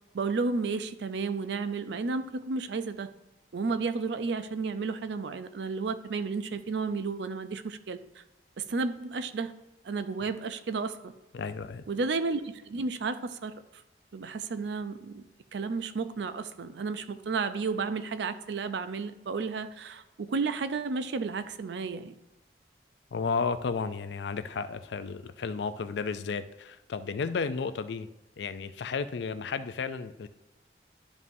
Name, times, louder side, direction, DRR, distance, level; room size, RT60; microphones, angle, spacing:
voice 1, 0.1-3.1 3.5-8.2 8.6-9.5 9.8-11.1 11.9-13.5 14.1-15.2 15.5-22.1, right 4 dB, 75° right, 11 dB, 0.5 m, -32 dB
voice 2, 11.3-11.8 23.1-28.1 28.4-30.3, left 5 dB, 75° left, 12 dB, 0.4 m, -33 dB
11.0 x 5.3 x 2.6 m, 1.0 s
head